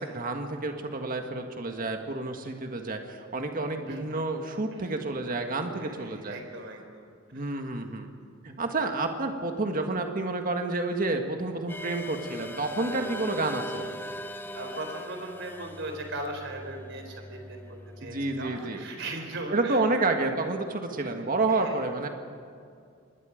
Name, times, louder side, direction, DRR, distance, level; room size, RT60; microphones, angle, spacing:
voice 1, 0.0-6.4 7.3-8.1 8.4-13.9 18.0-18.8 19.5-22.1, right 2 dB, 45° right, 4 dB, 1.7 m, -29 dB
voice 2, 3.4-4.2 4.7-4.9 5.7-7.1 7.3-7.4 14.5-19.8 21.5-21.8, right 2 dB, 65° right, 4 dB, 3.9 m, -39 dB
sound 1, 11.7-18.6, left 1 dB, 10° left, 0.7 m, -41 dB
25.5 x 20.5 x 5.2 m, 2.3 s
head